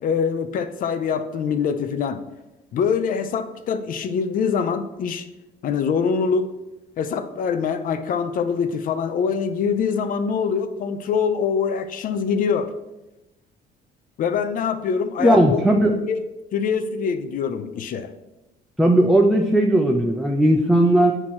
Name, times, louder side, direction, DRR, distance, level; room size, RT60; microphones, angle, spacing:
voice 1, 0.0-2.2 2.7-5.3 5.6-6.5 7.0-12.7 14.2-15.6 16.0-16.2 16.5-18.1, left 6 dB, 55° left, 10 dB, 0.6 m, -24 dB
voice 2, 15.2-15.9 18.8-21.1, right 1 dB, ahead, 1 dB, 0.5 m, -17 dB
8.7 x 2.9 x 4.3 m, 0.98 s
cardioid pair, 110°, 17 cm